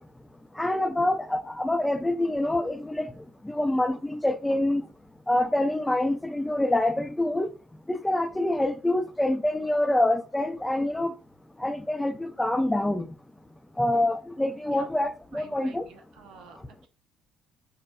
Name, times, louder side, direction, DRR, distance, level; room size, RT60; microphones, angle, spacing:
voice 1, 0.6-3.1 3.4-4.8 5.3-7.5 7.9-11.1 11.6-13.1 13.8-15.8, left 1 dB, 10° left, 0.3 m, -26 dB
voice 2, 15.3-16.9, right 6 dB, 60° right, 0.4 m, -48 dB
3.3 x 2.0 x 2.3 m
figure-of-eight pair, 50°, 0 cm